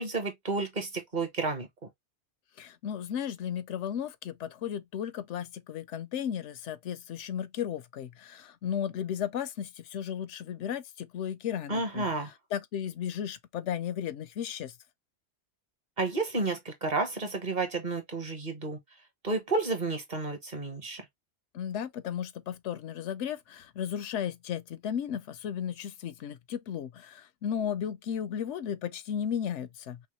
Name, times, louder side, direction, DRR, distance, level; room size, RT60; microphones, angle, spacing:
voice 1, 0.0-1.7 11.7-12.3 16.0-18.8 19.2-21.0, right 3 dB, 40° right, 1.1 m, -31 dB
voice 2, 2.6-12.1 12.5-14.7 21.5-30.0, left 9 dB, 85° left, 0.9 m, -35 dB
5.5 x 2.1 x 3.0 m
omnidirectional pair, 1.2 m